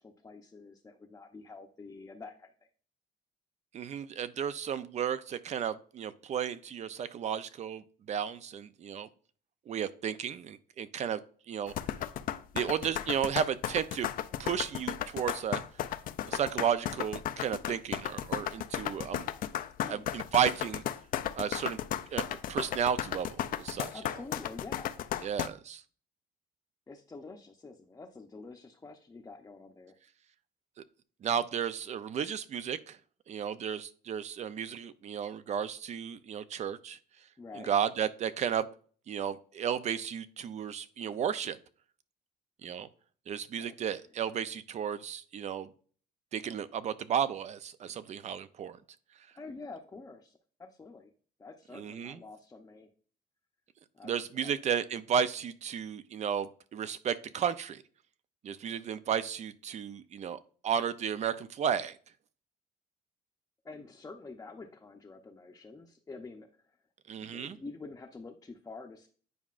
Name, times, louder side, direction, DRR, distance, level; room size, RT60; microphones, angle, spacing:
voice 1, 0.0-2.5 19.8-20.1 23.9-25.0 26.9-30.0 37.4-37.7 43.6-43.9 49.3-51.1 51.4-52.9 53.9-54.6 63.6-66.8 67.2-69.1, left 3 dB, 20° left, 1 dB, 0.7 m, -47 dB
voice 2, 3.7-9.1 9.7-11.2 11.5-11.7 12.5-14.1 14.4-15.6 16.3-19.3 19.9-20.8 21.3-21.8 22.1-24.0 25.2-25.8 31.2-33.0 33.3-37.0 37.5-38.7 39.1-41.6 42.6-42.9 43.3-45.7 46.3-48.8 51.7-52.2 54.0-57.8 58.4-62.0 67.1-67.6, right 8 dB, 45° right, 14 dB, 0.5 m, -33 dB
sound 1, 11.7-25.5, left 11 dB, 55° left, 0.4 m, -34 dB
9.2 x 4.9 x 2.5 m, 0.44 s
cardioid pair, 110°, 17 cm